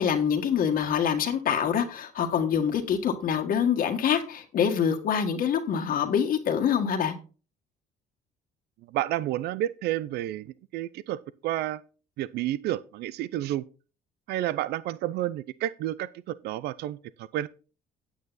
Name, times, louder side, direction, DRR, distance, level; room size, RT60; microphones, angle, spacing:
voice 1, 0.0-7.2, left 8 dB, 60° left, 1.6 m, -25 dB
voice 2, 8.9-11.8 12.2-13.6 14.3-17.5, right 13 dB, 75° right, 0.5 m, -30 dB
9.3 x 8.4 x 4.1 m
cardioid pair, 110°, 17 cm